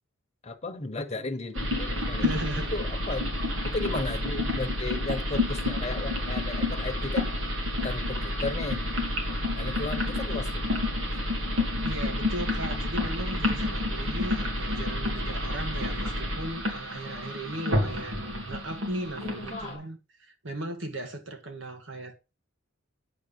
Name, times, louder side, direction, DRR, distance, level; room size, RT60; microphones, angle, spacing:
voice 1, 0.4-2.4 2.7-3.3 3.6-7.3 7.7-8.8 9.5-10.7 18.9-19.9, left 3 dB, 35° left, 1.1 m, -35 dB
sound 1, 1.5-19.8, left 1 dB, 85° right, 2.1 m, -29 dB
voice 2, 2.2-2.7 11.8-22.1, right 1 dB, 70° right, 1.7 m, -37 dB
9.0 x 3.6 x 7.0 m
head